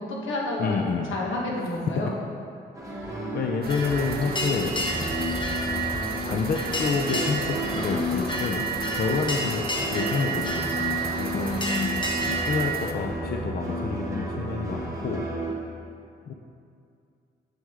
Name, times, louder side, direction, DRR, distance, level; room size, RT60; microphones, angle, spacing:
voice 1, 0.1-0.8 1.1-2.2 11.3-11.9, left 2 dB, 90° left, -3 dB, 1.3 m, -29 dB
voice 2, 0.6-1.1 1.5-1.6 3.3-5.3 6.2-8.6 8.9-11.5 12.2-15.2 16.3-16.4, left 5 dB, 50° left, 2 dB, 0.5 m, -29 dB
sound 1, 2.7-15.5, equal, 15° right, 1.1 m, -32 dB
sound 2, 3.6-12.6, right 2 dB, 25° left, 0.9 m, -30 dB
sound 3, 3.6-12.9, right 5 dB, 55° right, 0.5 m, -39 dB
6.9 x 6.2 x 3.7 m, 2.4 s
wide cardioid pair, 120°, 19 cm